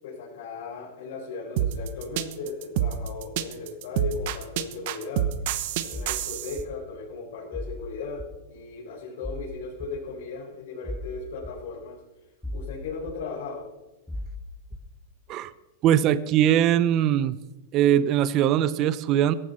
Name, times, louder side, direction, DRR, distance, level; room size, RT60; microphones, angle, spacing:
voice 1, 0.0-5.3 5.8-8.2 8.5-12.0 12.5-13.7, left 4 dB, 65° left, -7 dB, 6.1 m, -36 dB
sound 1, 1.6-6.6, right 11 dB, 50° right, 1.0 m, -27 dB
sound 2, 5.9-6.2 6.6-6.7 7.5-7.8 8.2-8.3 9.2-9.4 9.8-9.9 10.8-11.1 11.4-11.5 12.4-12.7 13.1-13.2 14.1-14.3 14.7-14.8, left 1 dB, 5° left, 1.1 m, -35 dB
voice 2, 15.8-17.4 17.7-19.3, right 10 dB, 30° right, 17 dB, 0.6 m, -21 dB
17.0 x 14.5 x 4.3 m, 1.1 s
supercardioid pair, 160°, 0 cm